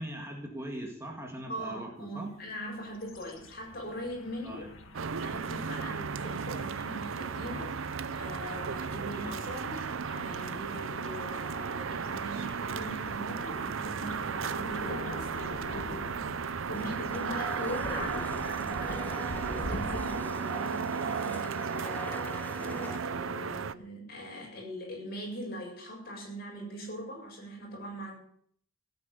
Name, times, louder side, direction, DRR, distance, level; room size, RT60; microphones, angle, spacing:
voice 1, 0.0-2.3 4.4-4.7 9.1-9.3, right 1 dB, 15° right, 1 dB, 2.0 m, -40 dB
voice 2, 1.5-4.7 5.2-7.8 8.1-16.0 16.7-28.2, equal, 45° left, -1 dB, 7.7 m, -41 dB
sound 1, 2.5-20.2, left 1 dB, 80° left, 1.9 m, -45 dB
sound 2, 4.9-23.7, right 6 dB, 75° right, 0.6 m, -35 dB
Domestic sounds home sounds, 16.7-23.0, left 1 dB, 10° left, 0.7 m, -44 dB
16.5 x 9.1 x 8.2 m, 0.62 s
head